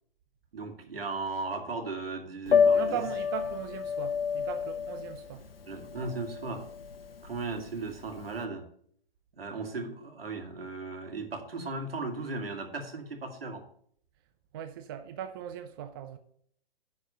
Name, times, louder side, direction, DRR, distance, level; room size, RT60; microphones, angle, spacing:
voice 1, 0.5-3.0 5.7-6.7 7.2-8.6 9.3-13.6, right 3 dB, 70° right, 2.1 m, -36 dB
Piano, 2.5-8.4, left 6 dB, 65° left, 1.1 m, -29 dB
voice 2, 2.7-5.4 14.5-16.2, right 9 dB, 25° right, 0.4 m, -38 dB
10.0 x 4.3 x 6.6 m
figure-of-eight pair, 120°, 31 cm